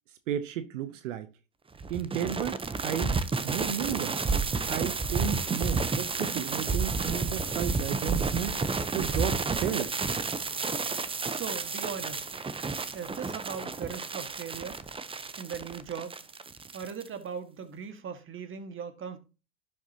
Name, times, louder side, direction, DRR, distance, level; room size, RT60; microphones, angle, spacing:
voice 1, 0.3-1.3 1.9-3.2 3.4-4.2 4.7-8.6 8.9-10.0, right 10 dB, 80° right, 0.9 m, -33 dB
sound 1, 1.8-17.1, right 4 dB, 15° right, 0.8 m, -31 dB
voice 2, 11.3-12.3 12.9-14.8 15.4-16.2 16.7-19.2, right 7 dB, 35° right, 1.8 m, -39 dB
11.5 x 7.0 x 2.8 m
hypercardioid pair, 85°, 37 cm